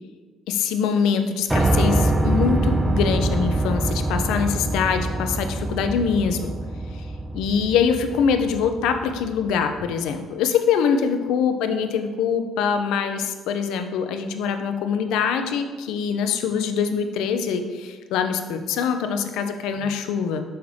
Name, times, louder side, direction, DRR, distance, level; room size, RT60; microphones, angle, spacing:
voice 1, 0.5-6.5 6.9-7.0 7.3-20.4, left 6 dB, 70° left, 7 dB, 0.5 m, -24 dB
Piano, 1.5-9.5, right 2 dB, 15° right, 0.5 m, -24 dB
5.7 x 5.6 x 3.2 m, 1.5 s
hypercardioid pair, 55°, 0 cm